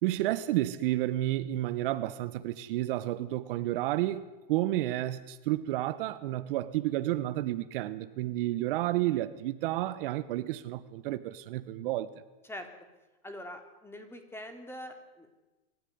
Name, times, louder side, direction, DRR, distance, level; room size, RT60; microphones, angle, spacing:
voice 1, 0.0-12.1, right 15 dB, 65° right, 1.4 m, -31 dB
voice 2, 13.2-15.4, left 1 dB, 10° left, 3.3 m, -43 dB
25.0 x 14.5 x 9.6 m
supercardioid pair, 135°, 29 cm